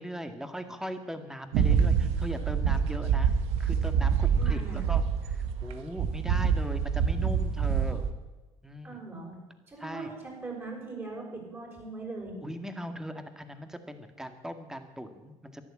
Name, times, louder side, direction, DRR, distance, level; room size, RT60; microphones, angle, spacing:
voice 1, 0.0-3.3 3.6-8.0 8.6-9.0 9.8-10.1 12.4-15.6, equal, 5° right, 8 dB, 1.8 m, -39 dB
sound 1, 1.5-5.7 6.0-8.1, right 7 dB, 80° right, 1.3 m, -26 dB
voice 2, 4.4-4.9 8.8-9.4 9.7-12.4, right 3 dB, 25° right, -1 dB, 6.8 m, -40 dB
14.0 x 11.0 x 8.5 m, 1.2 s
cardioid pair, 100°, 10 cm